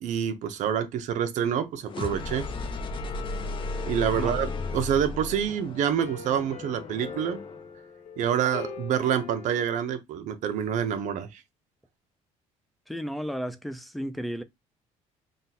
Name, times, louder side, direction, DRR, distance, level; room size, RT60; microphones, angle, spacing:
voice 1, 0.0-2.5 3.8-7.4 8.2-11.4, right 8 dB, 65° right, 0.8 m, -27 dB
sound 1, 1.9-7.7, left 3 dB, 40° left, 0.7 m, -35 dB
sound 2, 4.5-9.7, left 4 dB, 65° left, 0.9 m, -42 dB
voice 2, 12.9-14.4, equal, ahead, 0.5 m, -33 dB
3.7 x 2.4 x 4.2 m
cardioid pair, 125°, 13 cm